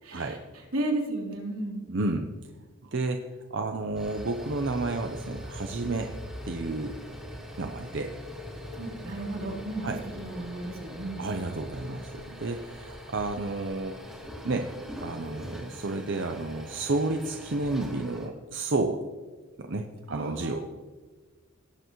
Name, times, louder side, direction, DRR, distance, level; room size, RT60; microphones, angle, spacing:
voice 1, 0.0-0.4 0.7-1.8 8.8-9.9 10.2-11.2 20.1-20.6, right 1 dB, 85° right, -2 dB, 3.2 m, -33 dB
voice 2, 1.9-2.3 2.8-6.1 6.5-7.0 7.6-8.1 9.8-10.0 11.2-14.0 14.4-14.7 15.0-19.0 19.6-20.6, right 2 dB, 60° right, 4 dB, 0.7 m, -31 dB
sound 1, 3.8-18.3, equal, 5° right, 1.9 m, -42 dB
17.5 x 7.9 x 3.1 m, 1.4 s
head